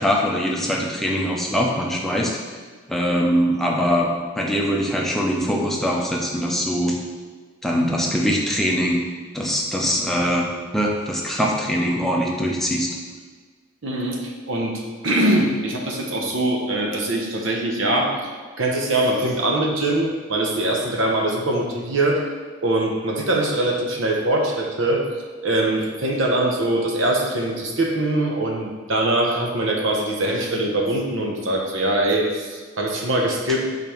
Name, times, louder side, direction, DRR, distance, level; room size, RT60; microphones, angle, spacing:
voice 1, 0.0-2.4 2.9-4.1 4.4-7.0 7.6-9.0 9.3-10.5 10.7-12.9, equal, ahead, -2 dB, 0.6 m, -22 dB
voice 2, 13.8-18.3 18.6-22.3 22.6-25.1 25.4-33.6, right 1 dB, 70° right, 0 dB, 0.9 m, -22 dB
5.3 x 4.0 x 4.5 m, 1.5 s
head